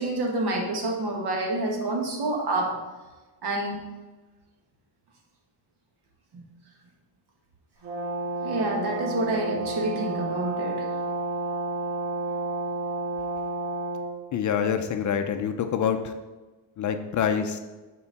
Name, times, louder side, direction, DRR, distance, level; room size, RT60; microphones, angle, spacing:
voice 1, 0.0-2.8 3.4-3.8 6.3-6.4 8.4-10.9, right 2 dB, 60° right, 0 dB, 1.7 m, -28 dB
Brass instrument, 7.8-14.1, right 2 dB, 80° right, 1.9 m, -31 dB
voice 2, 14.3-16.1 16.8-17.6, left 7 dB, 45° left, 7 dB, 0.5 m, -26 dB
7.9 x 4.6 x 4.0 m, 1.2 s
cardioid pair, 135°, 44 cm